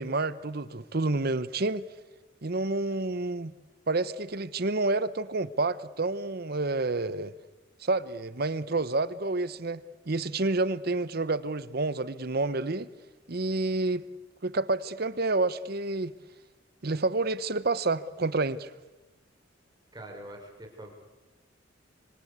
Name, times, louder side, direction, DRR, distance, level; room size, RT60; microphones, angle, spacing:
voice 1, 0.0-1.8 2.4-3.5 3.9-7.3 7.8-9.8 10.1-12.9 13.3-14.1 14.4-16.1 16.8-18.7, right 2 dB, 55° right, 1.0 m, -29 dB
voice 2, 19.9-20.9, right 1 dB, 20° right, 5.1 m, -44 dB
25.5 x 25.0 x 8.3 m
head